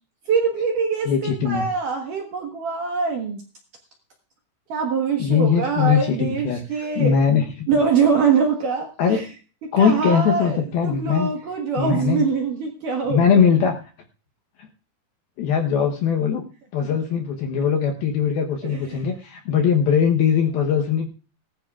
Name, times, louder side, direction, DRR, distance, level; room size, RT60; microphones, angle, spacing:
voice 1, 0.3-3.4 4.7-7.2 7.7-9.3 9.8-13.4 16.8-16.9 18.7-19.1, right 5 dB, 65° right, 2 dB, 2.2 m, -23 dB
voice 2, 1.1-1.6 5.2-7.7 9.0-9.2 9.7-11.3 11.8-12.3 13.1-13.8 15.4-16.4 16.7-21.1, left 7 dB, 70° left, 3 dB, 2.3 m, -20 dB
19.0 x 15.0 x 2.4 m, 0.37 s
omnidirectional pair, 5.5 m